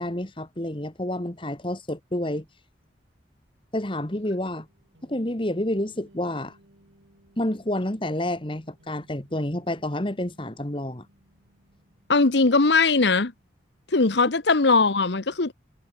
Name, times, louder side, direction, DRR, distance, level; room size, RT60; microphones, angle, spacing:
voice 1, 0.0-2.5 3.7-4.7 5.0-6.6 7.4-11.1, left 1 dB, 25° left, 1.8 m, -29 dB
sound 1, 3.8-13.5, equal, 90° right, 7.5 m, -60 dB
voice 2, 12.1-13.3 13.9-15.5, left 3 dB, 65° left, 1.1 m, -20 dB
head